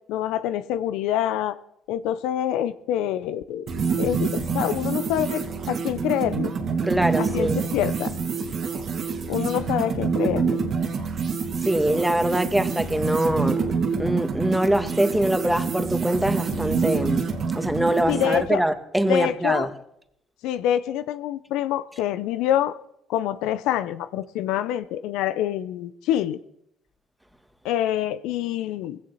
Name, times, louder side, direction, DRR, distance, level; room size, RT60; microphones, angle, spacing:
voice 1, 0.1-1.6 1.9-3.7 4.0-6.5 7.2-8.1 9.3-10.6 18.1-18.6 19.1-19.7 20.4-22.8 23.1-26.4 27.6-29.0, left 11 dB, 80° left, 0.6 m, -26 dB
sound 1, 3.7-18.5, right 5 dB, 60° right, 2.5 m, -27 dB
voice 2, 6.8-7.6 11.6-13.7 14.0-17.3 17.5-19.7, right 1 dB, 5° right, 1.7 m, -23 dB
18.5 x 16.5 x 4.1 m
supercardioid pair, 65°, 0 cm